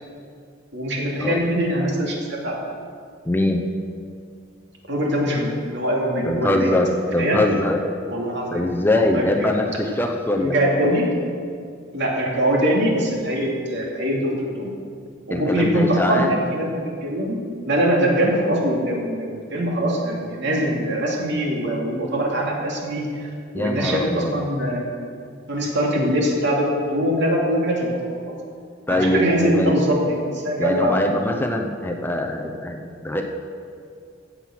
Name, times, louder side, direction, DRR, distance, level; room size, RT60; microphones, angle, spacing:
voice 1, 0.7-2.6 4.9-6.7 7.2-7.4 8.1-8.6 8.9-9.8 10.4-11.1 11.9-14.7 15.3-16.7 17.0-23.3 23.5-25.1 25.5-28.4 28.9-31.0, equal, 65° right, -2 dB, 2.5 m, -23 dB
voice 2, 3.2-3.6 6.2-7.8 8.5-10.5 15.3-16.3 23.5-24.3 28.9-29.8 30.6-33.2, left 1 dB, 10° left, 2 dB, 0.8 m, -22 dB
15.5 x 7.6 x 6.0 m, 2.3 s
head